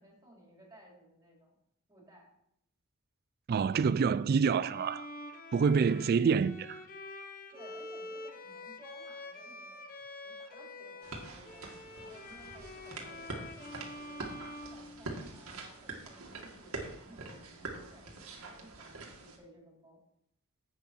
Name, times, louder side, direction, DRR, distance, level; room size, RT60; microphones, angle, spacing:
voice 1, 0.0-1.5 1.9-2.3 7.5-9.9 10.2-14.2 14.7-20.0, right 1 dB, 15° right, 3.7 m, -57 dB
voice 2, 3.5-5.1 5.5-6.8, right 6 dB, 45° right, 0.3 m, -27 dB
Bowed string instrument, 4.5-15.5, left 2 dB, 40° left, 1.0 m, -47 dB
sound 1, 11.0-19.4, right 2 dB, 85° right, 2.1 m, -45 dB
10.5 x 8.1 x 4.4 m
head